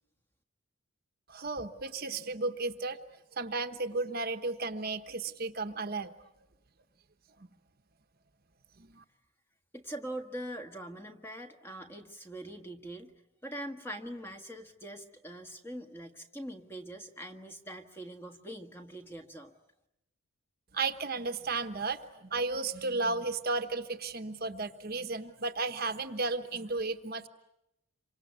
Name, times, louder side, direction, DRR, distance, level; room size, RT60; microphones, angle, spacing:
voice 1, 1.3-3.0 3.4-6.1 8.8-9.0 20.7-27.3, right 3 dB, 45° right, 8 dB, 1.1 m, -34 dB
voice 2, 9.7-13.1 13.4-19.5, right 1 dB, 10° left, 5 dB, 1.5 m, -43 dB
27.5 x 25.0 x 8.2 m, 0.87 s
head